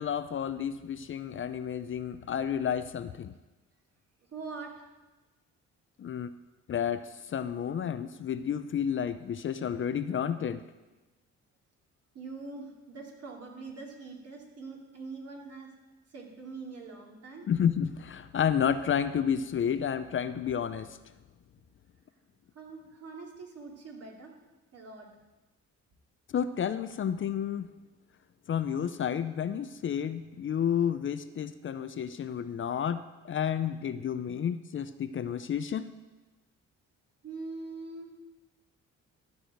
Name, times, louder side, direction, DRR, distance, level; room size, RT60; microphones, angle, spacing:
voice 1, 0.0-3.3 6.0-6.3 6.7-10.6 17.5-21.0 26.3-27.7 28.5-35.9, left 8 dB, 40° left, 12 dB, 0.5 m, -31 dB
voice 2, 4.3-4.9 12.1-15.7 16.1-17.5 22.5-24.3 24.7-25.1 37.2-38.2, right 4 dB, 55° right, -1 dB, 2.5 m, -43 dB
12.5 x 4.8 x 7.8 m, 1.1 s
cardioid pair, 90°, 30 cm